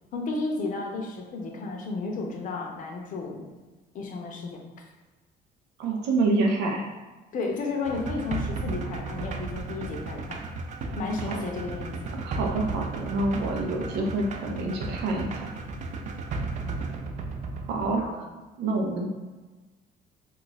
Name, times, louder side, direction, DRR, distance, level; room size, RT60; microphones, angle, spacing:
voice 1, 0.1-3.4 3.9-4.6 7.3-10.4 11.0-12.1 18.0-18.2, left 3 dB, 50° left, 1 dB, 0.6 m, -32 dB
voice 2, 5.8-6.9 11.3-11.4 12.1-15.5 17.7-18.0 18.6-19.1, right 2 dB, 90° right, 1 dB, 0.6 m, -27 dB
sound 1, 7.8-18.0, right 3 dB, 45° right, 0.4 m, -34 dB
2.4 x 2.4 x 4.0 m, 1.2 s
cardioid pair, 110°, 17 cm